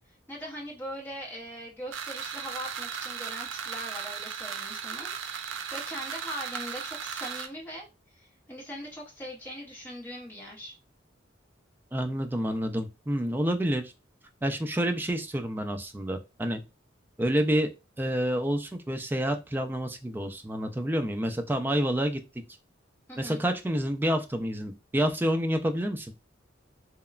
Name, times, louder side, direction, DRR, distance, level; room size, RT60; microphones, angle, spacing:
voice 1, 0.3-10.7 23.1-23.4, equal, 10° left, -3 dB, 0.8 m, -41 dB
sound 1, 1.9-7.5, right 7 dB, 85° right, 0.4 m, -36 dB
voice 2, 11.9-13.8 14.4-16.6 17.2-17.7 18.0-22.2 23.2-26.1, equal, 10° right, 6 dB, 0.3 m, -28 dB
2.9 x 2.1 x 2.3 m, 0.26 s
head